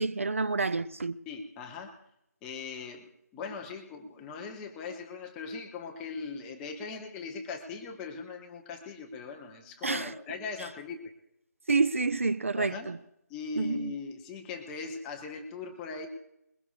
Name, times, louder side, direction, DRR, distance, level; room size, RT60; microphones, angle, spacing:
voice 1, 0.0-1.2 9.8-10.1 11.7-13.0 13.6-13.9, right 4 dB, 50° right, 0.5 m, -28 dB
voice 2, 1.3-2.0 2.4-3.1 3.3-11.0 12.6-12.9 13.3-16.1, left 4 dB, 5° left, 0.5 m, -40 dB
21.0 x 20.5 x 2.5 m
figure-of-eight pair, 155°, 9 cm